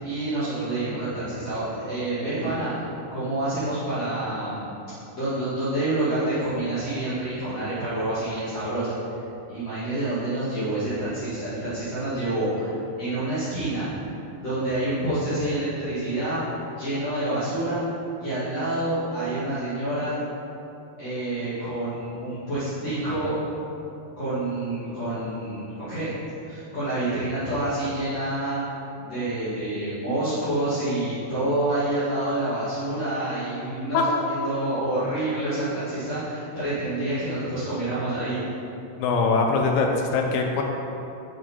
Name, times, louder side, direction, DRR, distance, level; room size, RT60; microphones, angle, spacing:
voice 1, 0.0-2.8 3.1-4.7 5.2-9.2 9.5-13.9 14.4-16.4 16.8-17.8 18.2-20.2 21.0-23.3 24.2-26.1 26.4-28.6 29.0-38.4, right 1 dB, 45° left, -14 dB, 2.9 m, -28 dB
voice 2, 39.0-40.6, left 4 dB, 80° left, 2 dB, 2.0 m, -22 dB
8.5 x 6.4 x 4.5 m, 2.8 s
omnidirectional pair, 4.6 m